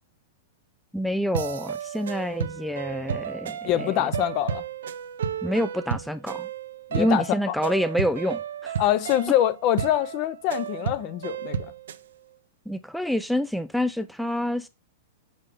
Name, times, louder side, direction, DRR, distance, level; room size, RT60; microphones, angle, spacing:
voice 1, 0.9-4.1 5.4-6.5 6.9-8.8 12.7-14.7, equal, ahead, 0.4 m, -27 dB
sound 1, 1.3-12.0, right 8 dB, 85° right, 0.7 m, -33 dB
voice 2, 3.6-4.6 6.9-7.5 8.8-11.7, left 13 dB, 40° left, 0.6 m, -25 dB
6.7 x 5.5 x 3.4 m
hypercardioid pair, 140°, 0 cm